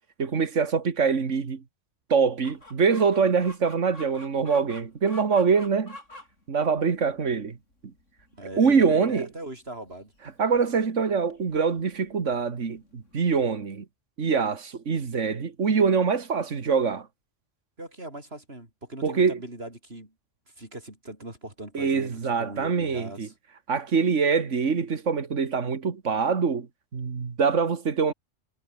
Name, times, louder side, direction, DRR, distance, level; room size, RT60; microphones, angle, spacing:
voice 1, 0.2-1.6 2.1-5.9 6.5-7.6 8.6-9.3 10.4-13.8 14.2-17.1 19.0-19.4 21.7-23.3 23.7-26.7 26.9-28.1, right 5 dB, 80° right, 2.1 m, -24 dB
Chicken rooster, 2.4-13.5, left 1 dB, 90° left, 8.5 m, -50 dB
voice 2, 8.3-10.1 17.8-20.1 20.6-23.3, right 1 dB, 55° right, 6.8 m, -40 dB
omnidirectional pair, 1.2 m